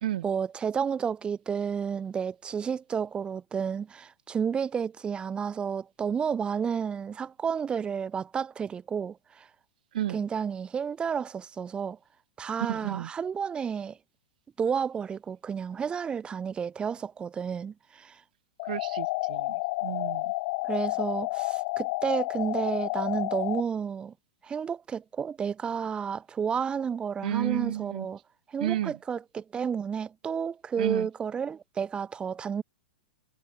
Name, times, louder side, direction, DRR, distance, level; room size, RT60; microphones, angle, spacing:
voice 1, 0.2-9.5 10.1-12.0 12.4-14.0 14.6-18.2 20.6-24.1 24.4-28.2 28.5-32.6, right 7 dB, 20° right, 1.1 m, -31 dB
voice 2, 9.9-10.2 12.7-13.1 18.6-20.3 27.2-28.1 28.6-29.0 30.8-31.1, right 12 dB, 60° right, 0.7 m, -32 dB
sound 1, 18.6-23.6, left 26 dB, 50° left, 0.6 m, -30 dB
figure-of-eight pair, 105°, 5 cm